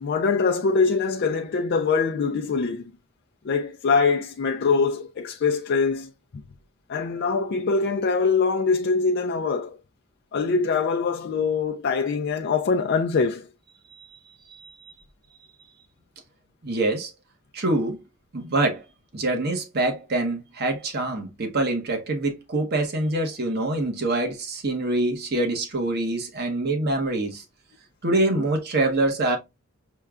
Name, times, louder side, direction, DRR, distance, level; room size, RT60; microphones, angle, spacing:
voice 1, 0.0-2.8 3.4-6.1 6.9-9.8 10.3-13.5 28.4-28.5, left 4 dB, 55° left, 0.4 m, -23 dB
voice 2, 16.6-17.1 17.5-18.0 18.3-18.8 19.1-27.4 28.0-29.4, right 2 dB, 55° right, 1.0 m, -25 dB
6.5 x 2.3 x 2.3 m
head